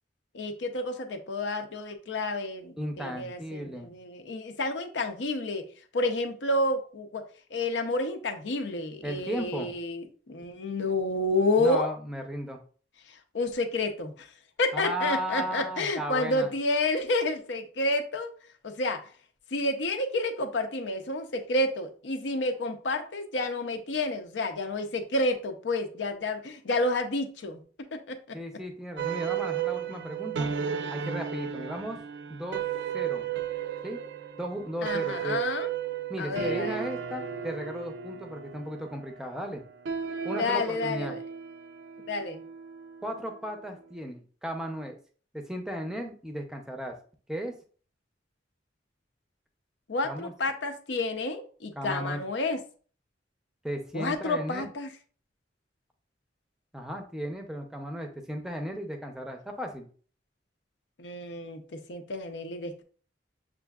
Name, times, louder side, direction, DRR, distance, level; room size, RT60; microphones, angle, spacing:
voice 1, 0.3-5.6 5.9-7.2 7.5-11.9 13.3-14.3 14.6-18.3 18.6-19.0 19.5-27.6 28.1-28.2 34.8-35.7 36.2-36.8 40.3-41.2 42.1-42.4 49.9-52.6 53.9-54.9 61.0-61.6 61.9-62.8, left 2 dB, 75° left, 6 dB, 0.6 m, -30 dB
voice 2, 2.8-3.9 9.0-9.7 11.6-12.6 14.7-16.5 28.3-30.5 30.9-32.0 32.3-32.6 32.9-33.3 33.8-34.0 34.4-35.4 36.1-39.6 40.2-41.2 43.0-45.0 45.3-47.0 47.3-47.5 50.0-50.3 51.8-52.2 53.6-54.7 56.7-59.9, equal, 5° right, 3 dB, 0.5 m, -35 dB
sound 1, 29.0-43.5, right 8 dB, 70° right, 0.4 m, -34 dB
6.7 x 2.5 x 2.3 m, 0.43 s
head